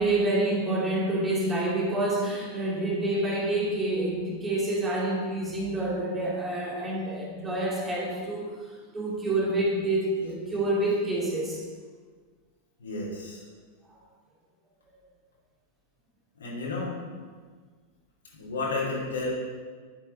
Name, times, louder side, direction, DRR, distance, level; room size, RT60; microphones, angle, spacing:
voice 1, 0.0-8.5 8.9-11.6 13.9-14.0, right 2 dB, 20° right, -4 dB, 2.7 m, -27 dB
voice 2, 12.8-13.4 16.4-17.0 18.3-19.3, left 3 dB, 70° left, -5 dB, 2.8 m, -31 dB
10.5 x 7.4 x 3.9 m, 1.5 s
figure-of-eight pair, 90°, 0 cm